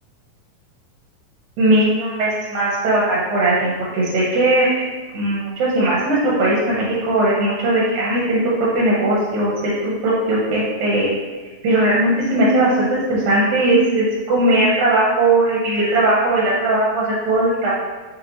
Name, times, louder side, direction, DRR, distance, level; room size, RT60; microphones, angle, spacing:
voice 1, 1.6-11.1 11.6-17.7, right 1 dB, 80° right, -6 dB, 2.2 m, -18 dB
5.6 x 2.7 x 2.8 m, 1.3 s
omnidirectional pair, 3.4 m